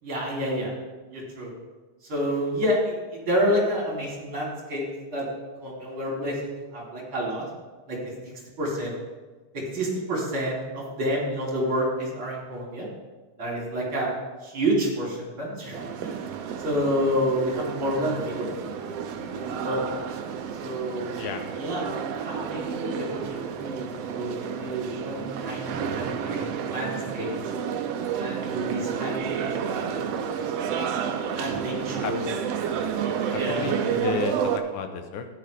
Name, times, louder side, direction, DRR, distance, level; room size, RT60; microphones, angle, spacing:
voice 1, 0.0-0.7 1.1-1.5 2.1-4.8 5.1-5.2 5.6-7.4 7.9-8.0 8.6-8.9 9.5-12.9 13.4-14.1 14.4-16.3 16.6-18.5 19.3-19.8 20.6-21.3 21.6-21.9 22.2-27.3 28.2-30.0 31.4-32.2 33.3-34.0, equal, 40° right, -3 dB, 3.8 m, -29 dB
sound 1, 15.7-34.6, right 7 dB, 90° right, 1.4 m, -30 dB
voice 2, 21.2-21.6 32.0-32.2 33.3-35.3, left 7 dB, 75° left, 7 dB, 2.2 m, -32 dB
13.5 x 10.5 x 3.4 m, 1.3 s
omnidirectional pair, 3.8 m